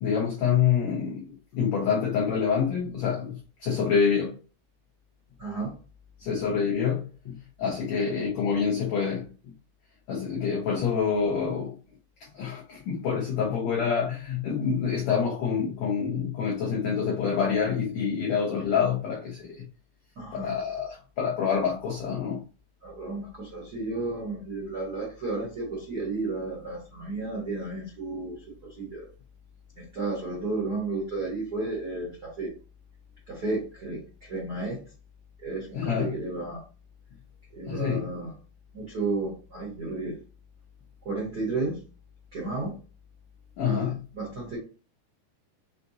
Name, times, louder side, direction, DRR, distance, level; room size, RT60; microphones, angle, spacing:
voice 1, 0.0-4.4 6.2-9.2 10.1-11.8 12.3-19.6 20.3-22.4 35.7-36.1 37.7-38.1 43.6-44.0, left 6 dB, 90° left, 1.5 m, -27 dB
voice 2, 5.4-5.7 20.2-20.7 22.8-28.4 28.8-29.1 29.8-32.5 33.3-34.8 35.4-36.6 37.5-38.3 38.7-40.2 41.0-41.8 42.3-42.7 43.6-44.6, right 3 dB, 90° right, 0.8 m, -33 dB
5.7 x 2.7 x 2.7 m
omnidirectional pair, 4.3 m